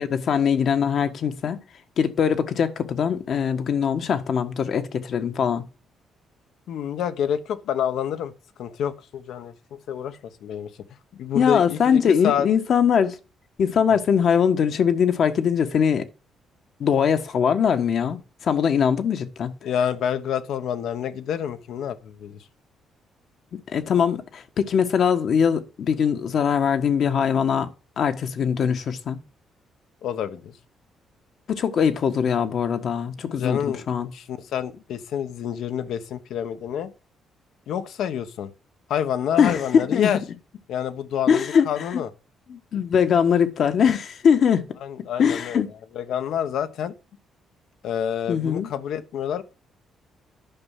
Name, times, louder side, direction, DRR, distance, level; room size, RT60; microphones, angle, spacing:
voice 1, 0.0-1.6 2.0-5.7 11.3-13.2 13.6-16.1 16.8-19.5 23.7-27.7 28.0-29.2 31.5-34.1 39.4-40.1 41.3-42.0 42.5-44.7 45.2-45.7 48.3-48.7, left 7 dB, 60° left, 1.4 m, -21 dB
voice 2, 6.7-8.3 8.6-9.5 9.9-10.7 11.1-12.5 19.6-22.4 30.0-30.5 33.4-36.9 37.7-38.5 38.9-40.2 40.7-42.1 44.8-45.6 45.9-46.9 47.8-49.4, left 9 dB, 80° left, 1.2 m, -28 dB
10.5 x 5.4 x 7.4 m
cardioid pair, 90°, 0 cm